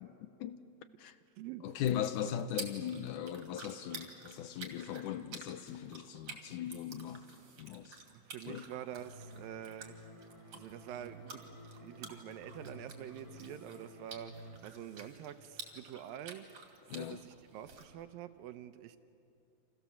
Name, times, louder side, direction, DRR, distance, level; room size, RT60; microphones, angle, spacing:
voice 1, 1.6-7.2 7.6-8.0 8.5-8.7 16.9-17.2, left 10 dB, 75° left, 2.0 m, -38 dB
sound 1, 1.7-17.8, right 4 dB, 45° right, 3.2 m, -51 dB
voice 2, 8.3-10.0 10.5-11.4 11.8-16.5 16.9-19.0, right 11 dB, 75° right, 2.5 m, -46 dB
sound 2, 9.0-14.6, equal, 10° right, 2.5 m, -53 dB
29.5 x 27.5 x 7.2 m
omnidirectional pair, 4.3 m